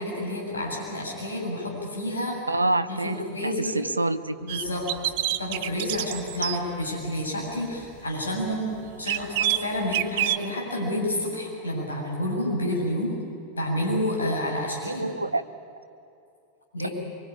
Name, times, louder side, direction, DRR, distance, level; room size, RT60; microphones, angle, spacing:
voice 1, 0.0-2.4 2.9-3.8 4.4-5.1 5.4-8.7 9.0-13.1 13.6-15.1 16.7-16.9, left 1 dB, 75° left, -2 dB, 7.7 m, -29 dB
voice 2, 2.5-4.3 14.8-15.4, right 2 dB, 80° right, 13 dB, 0.8 m, -27 dB
sound 1, 4.5-6.6 9.1-10.4, right 13 dB, 50° right, 0.8 m, -26 dB
24.0 x 24.0 x 9.9 m, 2.6 s
figure-of-eight pair, 90°, 0 cm